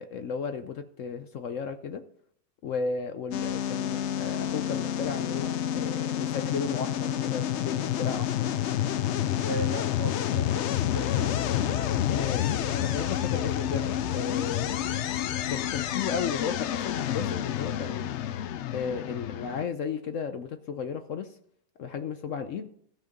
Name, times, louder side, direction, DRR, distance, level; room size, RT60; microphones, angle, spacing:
voice 1, 0.0-2.0 2.6-8.5 12.1-14.8 15.5-18.1 18.7-21.3 21.8-22.7, left 6 dB, 60° left, 8 dB, 0.9 m, -34 dB
sound 1, 3.3-19.6, left 10 dB, 85° left, 0.6 m, -29 dB
voice 2, 9.4-10.7 10.9-12.0, right 3 dB, 75° right, 3 dB, 2.2 m, -38 dB
14.5 x 5.8 x 5.2 m, 0.68 s
omnidirectional pair, 1.8 m